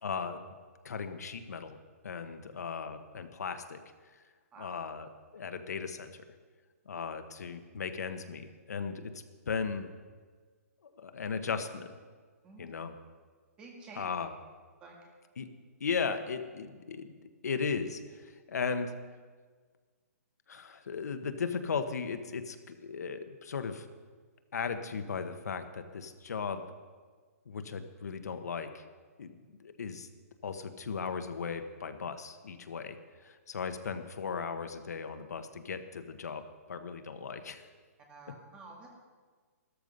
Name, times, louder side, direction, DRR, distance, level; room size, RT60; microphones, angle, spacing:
voice 1, 0.0-0.4 0.8-1.8 2.0-3.8 4.6-6.2 6.9-9.1 9.5-9.9 11.0-11.9 12.6-12.9 14.0-14.3 15.4-15.5 15.8-17.1 17.4-18.9 20.5-23.9 24.5-26.7 27.5-28.8 29.2-30.1 30.4-33.0 33.2-37.7, left 5 dB, 80° left, 8 dB, 1.2 m, -37 dB
voice 2, 13.6-14.0 14.8-15.0 38.1-38.9, right 3 dB, 10° right, 0 dB, 1.8 m, -50 dB
13.0 x 13.0 x 5.4 m, 1.5 s
hypercardioid pair, 170°, 9 cm